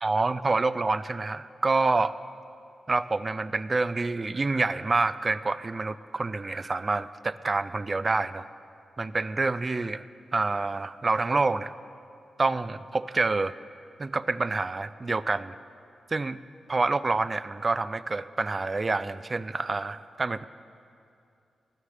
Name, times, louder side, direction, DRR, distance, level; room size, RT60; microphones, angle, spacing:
voice 1, 0.0-2.1 2.9-8.5 9.0-10.0 10.3-11.7 12.4-13.5 14.0-15.5 16.1-16.4 16.7-20.4, right 3 dB, 40° right, 15 dB, 0.3 m, -27 dB
13.0 x 6.6 x 6.4 m, 2.5 s
cardioid pair, 55°, 0 cm